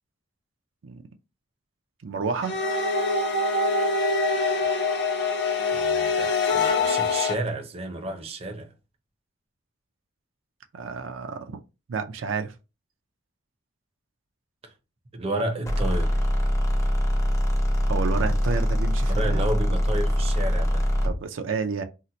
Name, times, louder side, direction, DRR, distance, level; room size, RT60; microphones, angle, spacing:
voice 1, 2.0-2.5 10.7-11.6 11.9-12.5 17.9-19.5 21.0-21.8, right 5 dB, 80° right, 0.5 m, -30 dB
sound 1, 2.4-7.3, left 3 dB, 60° left, 0.7 m, -24 dB
voice 2, 5.7-8.7 15.1-16.3 19.1-20.9, right 1 dB, 30° right, 0.6 m, -31 dB
sound 2, 15.7-21.2, equal, 15° left, 0.6 m, -23 dB
2.8 x 2.1 x 3.8 m
head